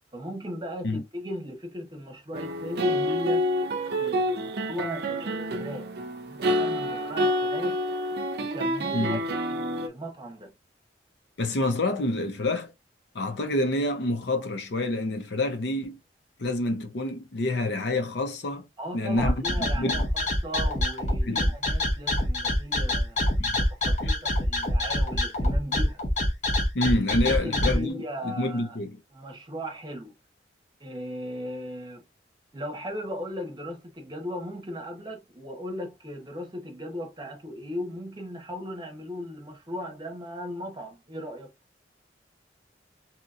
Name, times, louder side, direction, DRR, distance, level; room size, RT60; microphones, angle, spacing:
voice 1, 0.1-3.5 4.0-5.9 6.3-7.8 8.4-9.2 9.5-10.5 18.8-23.2 23.6-26.0 27.2-28.8 29.1-30.1 30.8-32.0 32.5-41.5, equal, 25° right, 0.8 m, -37 dB
sound 1, 2.3-9.9, equal, 60° right, 0.5 m, -28 dB
voice 2, 11.4-12.7 13.1-16.0 16.4-18.6 18.9-20.1 21.3-21.4 23.4-23.6 24.0-24.1 26.7-29.0, left 2 dB, 65° left, 0.6 m, -28 dB
sound 2, 19.2-27.8, left 1 dB, 40° left, 0.9 m, -25 dB
2.8 x 2.8 x 2.4 m
head